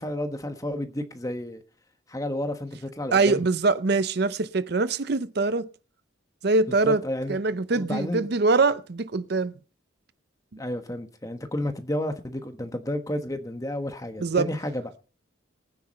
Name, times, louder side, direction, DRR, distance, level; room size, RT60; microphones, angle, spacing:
voice 1, 0.0-1.6 2.1-3.5 6.7-7.4 7.7-8.3 10.6-14.9, left 1 dB, 15° left, 1.3 m, -31 dB
voice 2, 3.1-5.7 6.4-7.0 7.3-9.5 14.2-14.5, right 3 dB, 55° right, 0.6 m, -23 dB
19.0 x 9.6 x 4.3 m
head